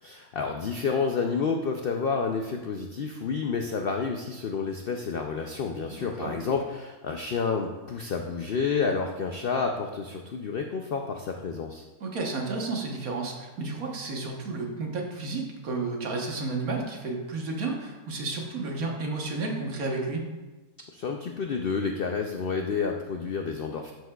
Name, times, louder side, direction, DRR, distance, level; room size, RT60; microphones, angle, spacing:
voice 1, 0.0-11.8 20.9-23.9, left 5 dB, 70° left, 3 dB, 0.5 m, -29 dB
voice 2, 5.9-6.3 12.0-20.3, right 3 dB, 70° right, 1 dB, 1.6 m, -32 dB
12.5 x 6.2 x 2.3 m, 1.2 s
omnidirectional pair, 1.6 m